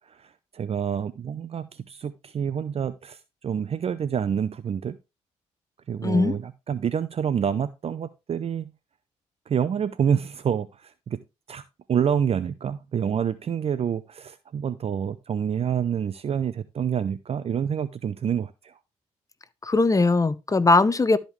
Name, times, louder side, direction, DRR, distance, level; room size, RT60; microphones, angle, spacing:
voice 1, 0.1-5.0 5.9-8.7 9.5-11.2 11.5-11.6 11.9-18.8, right 8 dB, 50° right, 0.6 m, -27 dB
voice 2, 6.0-6.4 19.6-21.2, left 3 dB, 25° left, 0.9 m, -20 dB
12.5 x 5.2 x 3.2 m
supercardioid pair, 65°, 13 cm